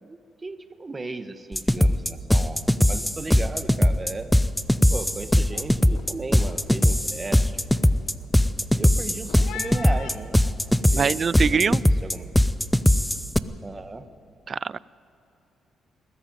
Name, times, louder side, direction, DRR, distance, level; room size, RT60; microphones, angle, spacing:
voice 1, 0.0-4.3 4.8-7.6 8.5-10.4 10.9-11.8 12.0-12.3 13.6-14.1, right 3 dB, 25° right, 9 dB, 1.4 m, -36 dB
sound 1, 1.5-13.4, left 1 dB, 5° left, 0.7 m, -20 dB
sound 2, 3.6-3.9 4.1-4.6 5.0-10.9, left 8 dB, 90° left, 1.3 m, -44 dB
voice 2, 10.9-11.8 14.5-14.8, right 6 dB, 45° right, 20 dB, 0.4 m, -23 dB
21.5 x 14.5 x 9.4 m, 2.7 s
cardioid pair, 90°, 0 cm